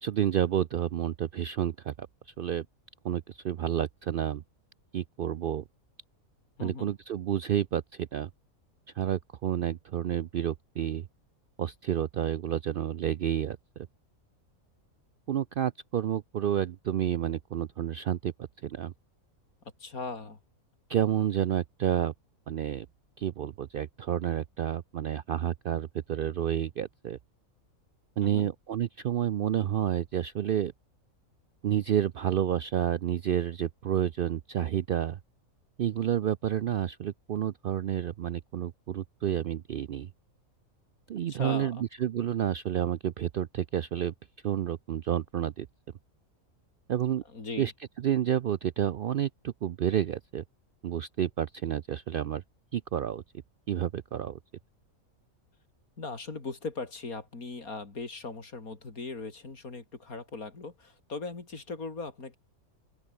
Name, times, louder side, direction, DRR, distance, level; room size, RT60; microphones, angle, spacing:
voice 1, 0.0-2.1 2.4-2.7 3.0-4.4 4.9-5.6 6.6-8.3 9.0-11.0 11.6-13.9 15.3-18.3 18.6-18.9 20.9-22.1 22.5-22.9 23.2-27.2 28.2-30.7 31.6-35.2 35.8-40.1 41.1-44.1 44.4-45.7 46.9-47.2 47.6-47.7 48.0-50.4 50.8-52.4 52.7-53.2 53.7-54.4, right 10 dB, 70° right, 0.5 m, -30 dB
voice 2, 6.6-6.9 19.8-20.4 28.2-28.5 41.3-41.8 47.3-47.7 56.0-62.4, left 3 dB, 90° left, 3.8 m, -39 dB
open air
omnidirectional pair, 1.5 m